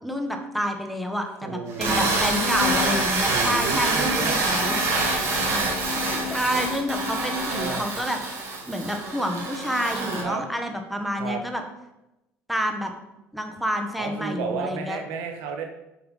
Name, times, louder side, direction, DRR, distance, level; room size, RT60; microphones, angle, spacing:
voice 1, 0.0-4.8 5.2-8.4 8.7-11.6 12.5-12.9 13.3-15.0, equal, ahead, 4 dB, 1.3 m, -29 dB
voice 2, 1.4-2.2 3.3-4.4 6.2-6.4 7.5-7.9 10.2-10.4 11.2-11.4 14.0-15.6, right 5 dB, 85° right, 4 dB, 1.5 m, -32 dB
sound 1, 1.7-10.2, right 3 dB, 60° right, 3.3 m, -26 dB
sound 2, 2.3-3.2 4.1-7.8, left 10 dB, 85° left, 0.6 m, -34 dB
8.0 x 5.5 x 5.5 m, 0.93 s
cardioid pair, 105°, 6 cm